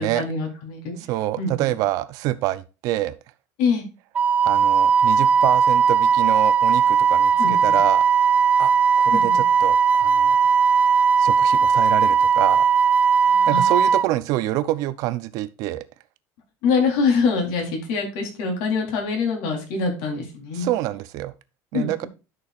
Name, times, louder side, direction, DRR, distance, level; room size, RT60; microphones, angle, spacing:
voice 1, 0.0-1.0 1.4-1.7 3.6-3.8 7.4-7.8 9.1-9.4 13.3-13.7 16.6-20.7 21.7-22.1, left 5 dB, 65° left, 3.9 m, -24 dB
voice 2, 1.0-3.2 4.5-8.0 8.6-10.4 11.2-12.7 13.5-15.8 20.5-21.3 21.7-22.0, right 15 dB, 50° right, 0.7 m, -26 dB
Wind instrument woodwind instrument, 4.1-14.0, right 6 dB, 20° right, 0.4 m, -18 dB
11.5 x 6.2 x 2.5 m
cardioid pair, 175°, 8 cm